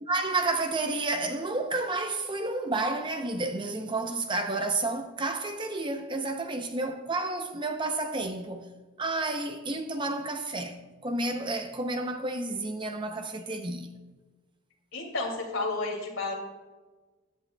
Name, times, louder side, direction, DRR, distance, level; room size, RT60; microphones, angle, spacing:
voice 1, 0.0-8.7 9.0-13.9, right 2 dB, 20° right, 0.6 m, -31 dB
voice 2, 14.9-16.3, left 3 dB, 65° left, 2.5 m, -31 dB
15.0 x 11.0 x 2.3 m
head